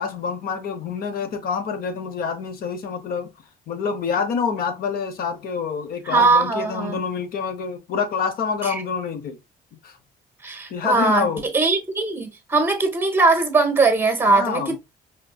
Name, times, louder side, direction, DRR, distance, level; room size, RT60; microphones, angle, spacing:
voice 1, 0.0-3.3 3.7-9.4 9.8-10.0 10.7-11.5 14.3-14.8, left 6 dB, 60° left, 0.9 m, -27 dB
voice 2, 6.1-7.0 8.6-8.7 10.4-11.3 11.5-14.8, right 3 dB, 15° right, 1.0 m, -20 dB
5.0 x 2.5 x 2.3 m
cardioid pair, 110°, 17 cm